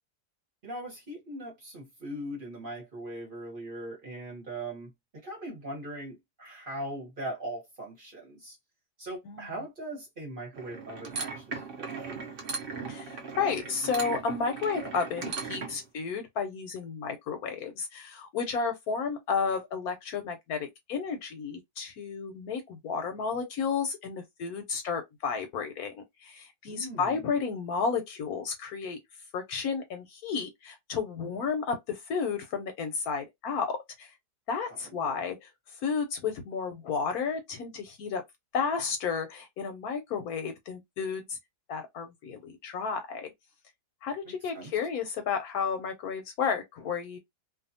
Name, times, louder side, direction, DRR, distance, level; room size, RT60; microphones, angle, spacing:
voice 1, 0.6-8.6 9.0-12.2 26.7-27.2 35.0-35.2 44.2-44.7, right 1 dB, 35° right, 1.1 m, -40 dB
sound 1, 10.5-15.8, right 4 dB, 55° right, 0.6 m, -38 dB
voice 2, 12.9-29.0 29.3-34.1 34.5-35.5 35.8-38.2 38.5-41.4 41.7-43.3 44.0-47.2, left 5 dB, 70° left, 1.0 m, -32 dB
2.7 x 2.3 x 2.6 m
omnidirectional pair, 1.8 m